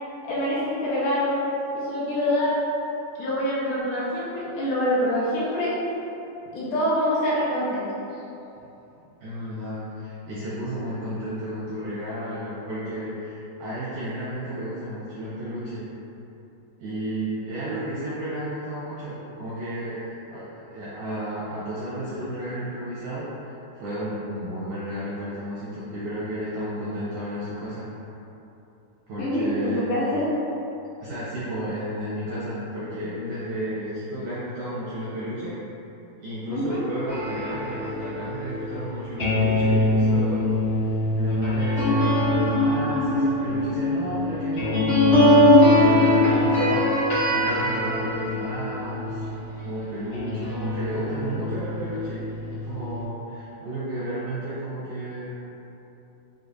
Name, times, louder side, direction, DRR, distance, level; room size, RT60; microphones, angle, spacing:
voice 1, 0.2-1.4 1.7-2.5 3.2-5.7 6.5-7.9 29.2-30.3 36.5-36.8, left 1 dB, 75° left, -9 dB, 2.1 m, -25 dB
voice 2, 9.2-15.8 16.8-27.9 29.1-30.2 31.0-35.6 36.2-49.3 49.6-52.2 52.5-55.3, right 1 dB, 80° right, -9 dB, 1.6 m, -32 dB
sound 1, 37.1-49.6 50.1-53.0, left 1 dB, 50° left, 1.0 m, -22 dB
6.6 x 2.3 x 2.4 m, 2.9 s
omnidirectional pair, 4.2 m